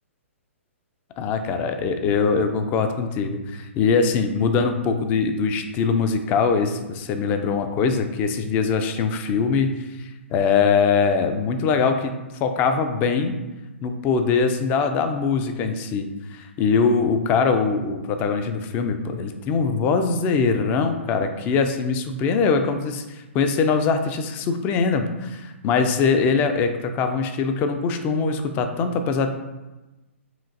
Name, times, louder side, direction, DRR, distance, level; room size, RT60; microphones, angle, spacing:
voice 1, 1.2-9.7 10.0-12.1 12.4-13.3 13.8-29.3, left 5 dB, 25° left, 7 dB, 0.3 m, -22 dB
5.6 x 2.4 x 2.6 m, 1.1 s
figure-of-eight pair, 120°, 7 cm